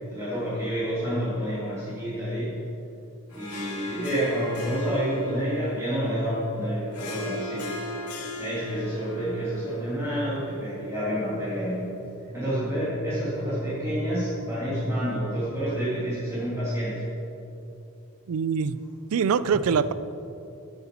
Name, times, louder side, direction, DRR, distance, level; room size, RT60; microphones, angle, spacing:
voice 1, 0.1-2.5 3.3-7.7 8.4-12.0 12.3-17.0, equal, 15° right, -11 dB, 2.1 m, -29 dB
Harp, 3.3-12.0, left 1 dB, 90° left, 1.2 m, -38 dB
voice 2, 18.3-18.8 19.1-19.9, right 6 dB, 65° right, 15 dB, 0.3 m, -23 dB
9.6 x 8.0 x 4.4 m, 2.8 s
head